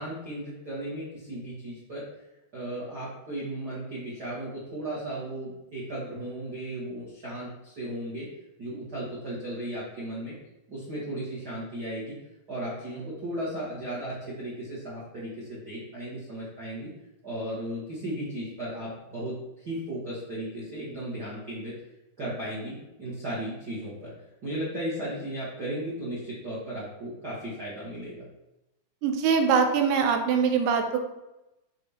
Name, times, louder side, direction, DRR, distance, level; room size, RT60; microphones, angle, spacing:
voice 1, 0.0-2.0 2.5-8.3 8.6-10.3 10.7-12.1 12.5-16.9 17.2-21.7 22.2-24.1 24.4-28.2, right 1 dB, 65° right, -8 dB, 1.0 m, -35 dB
voice 2, 29.0-31.0, right 6 dB, 90° right, 5 dB, 2.7 m, -23 dB
7.2 x 4.3 x 3.5 m, 0.95 s
omnidirectional pair, 4.6 m